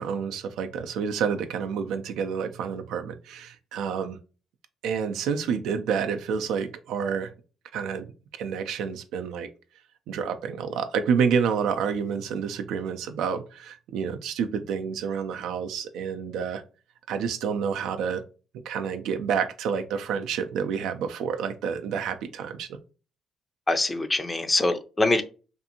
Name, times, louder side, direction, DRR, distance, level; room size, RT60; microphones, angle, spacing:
voice 1, 0.0-4.2 4.8-7.3 7.7-8.1 8.4-9.5 10.1-16.6 17.1-18.2 18.7-22.8, right 6 dB, 90° right, 0.4 m, -29 dB
voice 2, 23.7-25.2, left 2 dB, 20° left, 0.4 m, -24 dB
2.6 x 2.5 x 2.7 m
cardioid pair, 90°, 0 cm